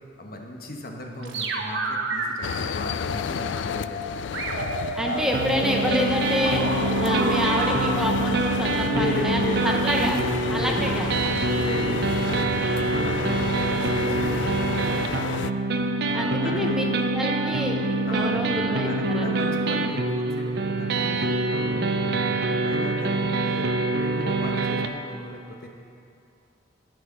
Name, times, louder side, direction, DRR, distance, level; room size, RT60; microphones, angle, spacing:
voice 1, 0.2-4.7 5.0-5.3 8.8-10.2 10.5-10.9 11.3-17.0 18.1-25.7, left 1 dB, 55° left, 1 dB, 1.3 m, -36 dB
sound 1, 1.2-2.2 2.8-4.0 4.3-7.9, right 2 dB, 90° right, 1.3 m, -29 dB
sound 2, 2.4-15.5, left 7 dB, 75° left, 0.3 m, -31 dB
voice 2, 4.9-6.6 7.0-10.1 10.5-11.1 16.1-16.8 17.1-19.4 20.9-21.4 21.6-22.0, equal, 5° right, 0 dB, 0.8 m, -28 dB
sound 3, 5.3-24.9, right 2 dB, 60° right, 0.6 m, -25 dB
14.0 x 6.2 x 6.2 m, 2.6 s
head